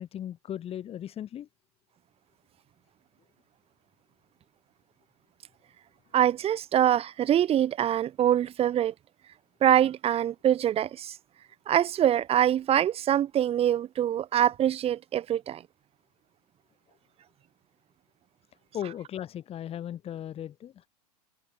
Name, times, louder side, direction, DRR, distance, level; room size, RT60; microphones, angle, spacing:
voice 1, 0.0-1.5 18.7-20.9, left 10 dB, 30° left, 7.7 m, -37 dB
voice 2, 6.1-8.9 9.6-11.2 11.7-15.6, right 11 dB, 30° right, 4.3 m, -24 dB
figure-of-eight pair, 95°, 21 cm